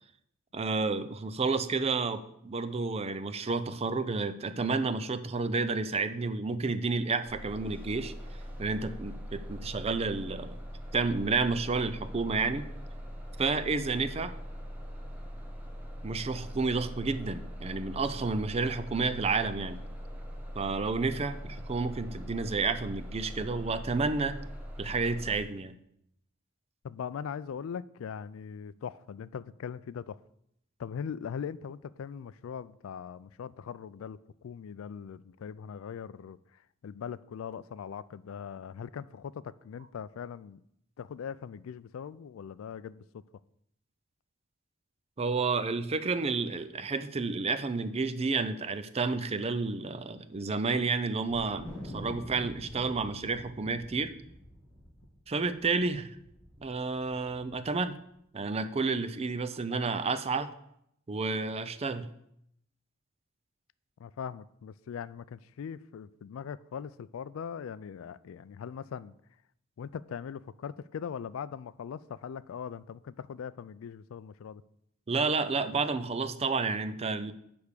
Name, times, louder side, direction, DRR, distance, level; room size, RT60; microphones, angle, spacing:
voice 1, 0.5-8.1 8.6-10.6 10.9-12.7 13.4-14.3 16.0-19.8 20.5-24.4 24.8-25.7 45.2-54.1 55.3-56.2 56.6-57.9 58.3-60.5 61.1-62.1 75.1-77.3, right 4 dB, 30° right, 0.5 m, -30 dB
Bus, 7.2-25.4, equal, 10° right, 1.2 m, -42 dB
voice 2, 26.8-30.2 30.8-36.4 36.8-40.6 41.0-43.2 64.0-69.1 69.8-74.6, left 7 dB, 75° left, 0.3 m, -40 dB
Wind, 51.3-57.8, equal, 10° left, 3.7 m, -46 dB
9.7 x 3.5 x 6.6 m
head